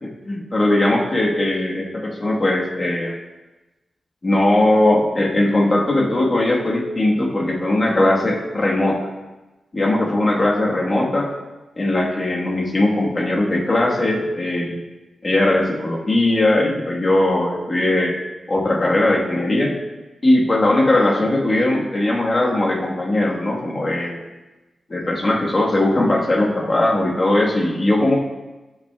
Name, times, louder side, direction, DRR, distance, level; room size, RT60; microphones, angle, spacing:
voice 1, 0.0-3.2 4.2-9.1 9.7-11.3 11.8-14.8 15.2-18.2 18.5-19.8 20.2-24.2 24.9-28.1, left 1 dB, 30° left, -2 dB, 1.2 m, -19 dB
11.5 x 6.1 x 2.2 m, 1.1 s
wide cardioid pair, 125°, 0 cm